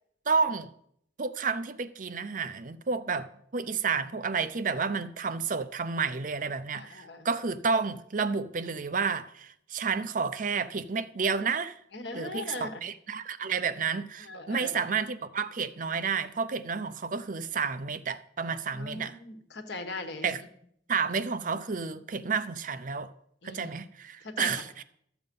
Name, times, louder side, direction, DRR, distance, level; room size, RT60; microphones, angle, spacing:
voice 1, 0.3-0.7 1.2-11.8 12.1-19.2 20.2-20.4 20.9-23.1 23.4-24.8, right 5 dB, 45° right, 0.6 m, -31 dB
voice 2, 6.7-7.3 11.9-12.8 14.2-14.7 18.7-20.3 23.4-23.8 24.2-24.6, left 2 dB, 70° left, 1.4 m, -39 dB
13.0 x 7.1 x 5.4 m
head